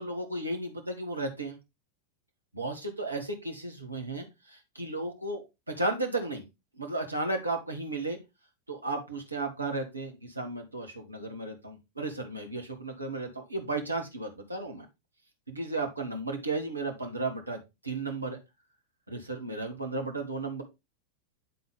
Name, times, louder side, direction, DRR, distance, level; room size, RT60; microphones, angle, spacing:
voice 1, 0.0-1.6 2.5-6.4 6.8-8.2 8.7-14.8 15.5-18.4 19.1-20.6, right 2 dB, 80° right, 3 dB, 1.4 m, -34 dB
9.3 x 3.9 x 3.6 m, 0.24 s
figure-of-eight pair, 90°, 0 cm